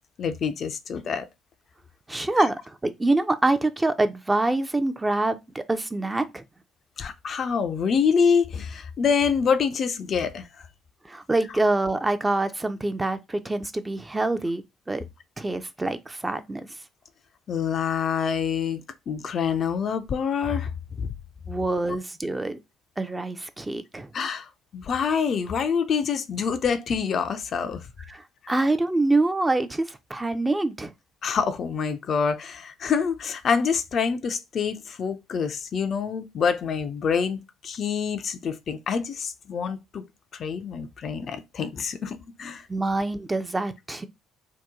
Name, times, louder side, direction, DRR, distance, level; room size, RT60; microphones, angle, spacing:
voice 1, 0.2-1.3 7.0-10.5 17.5-20.7 21.0-21.1 24.1-27.9 31.2-40.0 40.3-42.7, left 6 dB, 50° left, 0.4 m, -26 dB
voice 2, 2.1-6.4 11.1-15.0 15.4-16.7 21.5-22.6 23.0-24.1 28.1-30.9 42.7-44.1, right 2 dB, 20° right, 0.5 m, -25 dB
2.8 x 2.2 x 3.5 m
hypercardioid pair, 50°, 0 cm